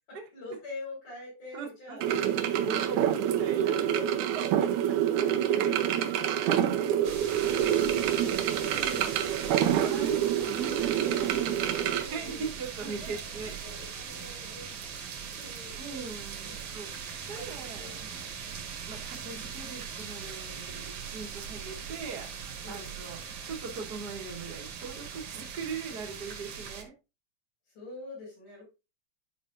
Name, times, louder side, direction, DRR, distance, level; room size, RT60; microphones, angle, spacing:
voice 1, 0.1-2.1 2.8-3.3 3.7-4.1 5.0-5.7 6.1-8.0 8.3-8.4 11.7-12.5 12.8-16.6 17.3-19.1 22.6-22.9 27.7-28.6, left 2 dB, 85° left, 6.5 m, -46 dB
voice 2, 1.5-2.2 2.5-3.7 4.6-4.7 5.9-6.4 8.0-13.6 15.8-18.2 18.9-22.3 22.7-26.9, right 5 dB, 50° right, 1.2 m, -41 dB
sound 1, 2.0-12.1, right 10 dB, 85° right, 2.2 m, -27 dB
sound 2, 7.0-26.8, right 7 dB, 70° right, 2.5 m, -40 dB
11.5 x 5.5 x 2.5 m
omnidirectional pair, 3.5 m